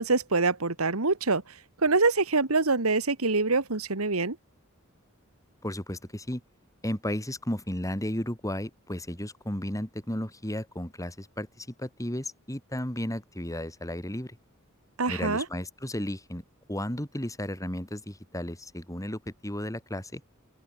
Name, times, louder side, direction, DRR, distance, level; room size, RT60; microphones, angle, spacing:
voice 1, 0.0-1.4 1.8-4.4 15.0-15.5, right 3 dB, 90° right, 2.0 m, -25 dB
voice 2, 5.6-6.4 6.8-14.3 15.1-16.4 16.7-20.2, left 1 dB, 15° left, 6.2 m, -34 dB
open air
head